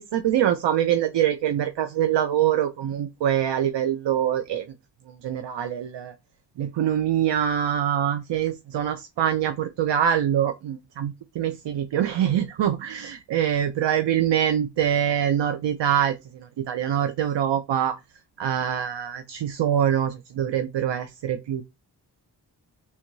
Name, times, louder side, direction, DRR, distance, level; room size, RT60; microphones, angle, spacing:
voice 1, 0.0-4.7 5.1-6.1 6.6-18.0 18.4-21.6, right 10 dB, 80° right, 0.6 m, -24 dB
3.5 x 2.7 x 4.5 m
wide cardioid pair, 85°, 42 cm